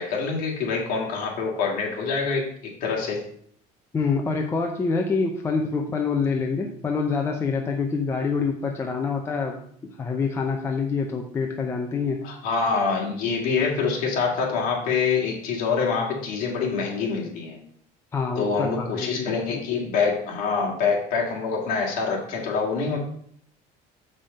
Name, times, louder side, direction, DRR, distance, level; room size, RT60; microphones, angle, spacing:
voice 1, 0.0-2.5 2.8-3.2 12.2-17.6 18.4-23.0, left 5 dB, 55° left, -2 dB, 2.7 m, -25 dB
voice 2, 3.9-12.2 18.1-19.6, left 4 dB, 15° left, 2 dB, 0.6 m, -26 dB
7.1 x 5.4 x 5.3 m, 0.63 s
cardioid pair, 180°, 17 cm